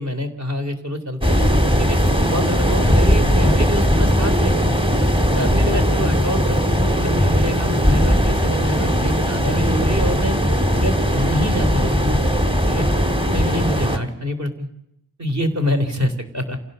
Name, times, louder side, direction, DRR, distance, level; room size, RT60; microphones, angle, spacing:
voice 1, 0.0-1.4 1.8-2.0 2.3-4.7 5.4-10.4 10.7-12.3 12.7-12.9 13.3-14.7 15.2-16.6, equal, 40° right, 7 dB, 3.5 m, -26 dB
sound 1, 1.2-14.0, equal, 15° right, 2.1 m, -18 dB
28.0 x 17.0 x 6.8 m, 0.80 s
wide cardioid pair, 145°, 41 cm